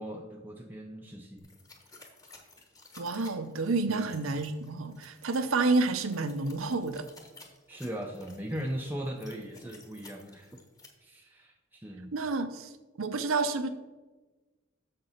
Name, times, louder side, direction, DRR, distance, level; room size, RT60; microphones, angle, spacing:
voice 1, 0.0-1.5 3.9-4.2 7.7-10.6 11.0-12.1, equal, 10° right, 1 dB, 0.5 m, -39 dB
sound 1, 1.4-10.9, left 3 dB, 15° left, 1.2 m, -55 dB
voice 2, 3.0-7.1 12.1-12.7 13.0-13.7, right 3 dB, 85° right, 9 dB, 0.7 m, -29 dB
6.8 x 6.8 x 5.6 m, 1.2 s
head